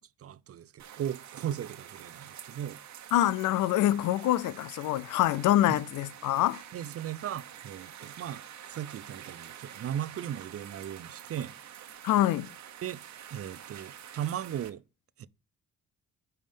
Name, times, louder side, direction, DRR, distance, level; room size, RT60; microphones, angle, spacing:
voice 1, 0.2-2.8 5.7-5.8 6.7-8.4 8.7-11.5 12.8-13.0 13.3-14.8 15.2-15.3, right 10 dB, 50° right, 0.6 m, -37 dB
sound 1, 0.8-14.7, right 10 dB, 70° right, 1.2 m, -47 dB
voice 2, 3.1-6.6 12.0-12.5, left 13 dB, 80° left, 0.5 m, -25 dB
9.4 x 3.6 x 5.2 m
cardioid pair, 90°, 30 cm